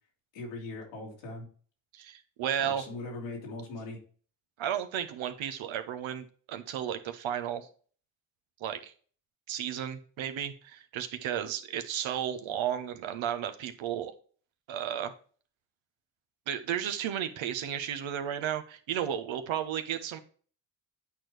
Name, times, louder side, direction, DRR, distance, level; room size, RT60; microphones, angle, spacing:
voice 1, 0.3-1.5 2.6-4.0, left 2 dB, 85° left, -1 dB, 2.2 m, -40 dB
voice 2, 1.9-2.9 4.6-7.7 8.6-8.9 9.5-14.1 14.7-15.1 16.5-20.2, right 9 dB, 70° right, 8 dB, 1.0 m, -33 dB
8.7 x 4.5 x 3.2 m, 0.43 s
hypercardioid pair, 45°, 49 cm